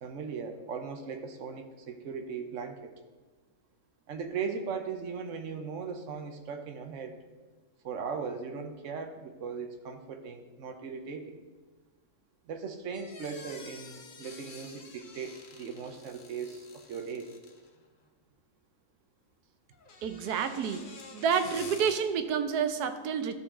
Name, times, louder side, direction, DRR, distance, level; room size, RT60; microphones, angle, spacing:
voice 1, 0.0-2.9 4.1-7.2 7.8-11.4 12.4-17.3, right 5 dB, 55° right, 6 dB, 1.1 m, -38 dB
sound 1, 12.9-17.8 19.7-22.0, left 4 dB, 45° left, 0.7 m, -49 dB
voice 2, 20.0-20.9 21.1-23.3, right 7 dB, 75° right, 9 dB, 1.2 m, -29 dB
13.5 x 5.4 x 3.7 m, 1.3 s
omnidirectional pair, 1.7 m